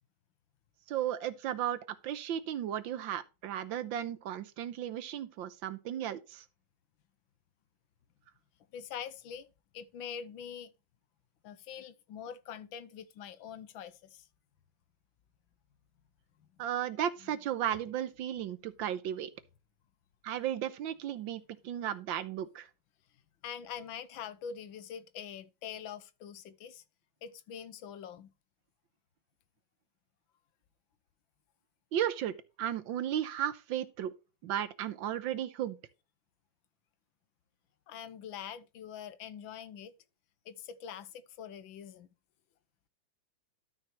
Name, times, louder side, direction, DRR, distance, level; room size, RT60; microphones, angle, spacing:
voice 1, 0.9-6.4 16.6-19.3 20.2-22.7 31.9-34.1 34.4-35.8, right 10 dB, 75° right, 1.5 m, -35 dB
voice 2, 8.7-9.5 9.7-10.7 11.4-14.3 17.2-17.4 23.4-26.8 27.2-28.3 37.9-39.9 40.4-42.1, left 8 dB, 75° left, 1.5 m, -44 dB
12.5 x 5.9 x 3.1 m
omnidirectional pair, 2.2 m